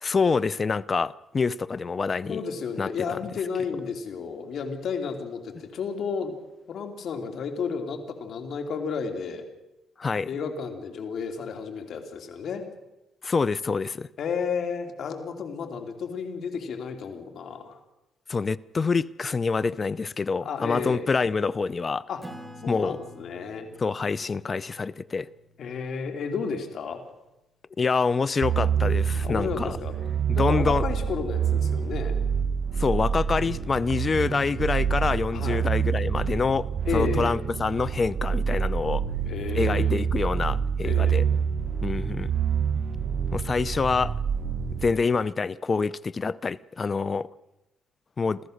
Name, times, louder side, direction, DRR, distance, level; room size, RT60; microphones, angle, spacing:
voice 1, 0.0-2.4 2.8-3.2 10.0-10.3 13.2-14.1 18.3-22.0 22.7-23.0 23.8-25.3 27.8-29.8 30.4-30.8 32.8-39.0 39.5-41.2 41.8-42.3 43.3-44.1 44.8-47.3 48.2-48.4, left 4 dB, 35° left, 0.6 m, -26 dB
voice 2, 2.3-6.4 6.7-9.5 10.2-12.6 14.2-17.8 20.4-21.0 22.1-22.2 22.6-23.7 25.6-27.0 29.2-29.9 30.3-32.1 35.3-35.6 36.8-37.3 39.2-40.0 40.8-41.3, left 5 dB, 65° left, 2.9 m, -32 dB
Acoustic guitar / Strum, 22.2-27.2, equal, 10° right, 2.4 m, -49 dB
sound 1, 28.4-44.9, right 7 dB, 55° right, 1.1 m, -27 dB
28.5 x 14.0 x 6.6 m
cardioid pair, 90°, 0 cm